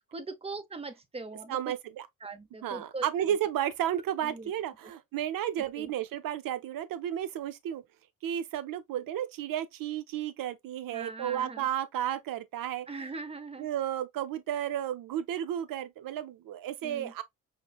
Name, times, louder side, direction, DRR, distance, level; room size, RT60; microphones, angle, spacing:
voice 1, 0.0-1.6 2.2-3.0 4.2-4.5 5.8-5.9 10.9-11.7 12.9-13.7 16.8-17.1, right 3 dB, 15° right, 0.7 m, -41 dB
voice 2, 1.5-2.1 2.6-7.8 8.2-12.9 13.6-17.2, right 10 dB, 75° right, 0.6 m, -33 dB
5.1 x 2.1 x 2.3 m
cardioid pair, 80°, 35 cm